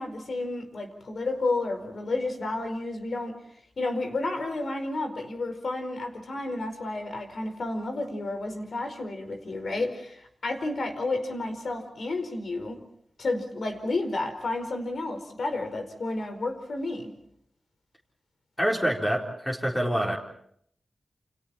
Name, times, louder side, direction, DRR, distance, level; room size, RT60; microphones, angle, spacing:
voice 1, 0.0-3.3 3.8-12.8 13.2-17.1, left 2 dB, 70° left, 6 dB, 4.9 m, -31 dB
voice 2, 18.6-20.2, equal, 15° left, -1 dB, 4.2 m, -26 dB
29.5 x 28.0 x 4.4 m, 0.68 s
wide cardioid pair, 85°, 0 cm